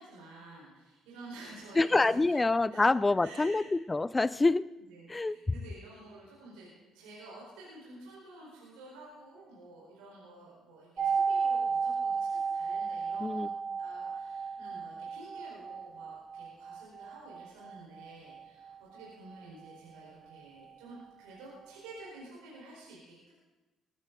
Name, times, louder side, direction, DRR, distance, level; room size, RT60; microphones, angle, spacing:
voice 1, 0.0-2.4 2.7-3.6 4.9-23.3, right 2 dB, 80° right, -5 dB, 4.5 m, -51 dB
voice 2, 1.8-4.7 5.1-5.4 13.2-13.5, left 3 dB, 20° left, 18 dB, 0.4 m, -26 dB
sound 1, 11.0-20.7 21.0-21.1, right 5 dB, 40° right, 1.8 m, -34 dB
21.0 x 11.5 x 3.9 m, 1.1 s
hypercardioid pair, 55°, 0 cm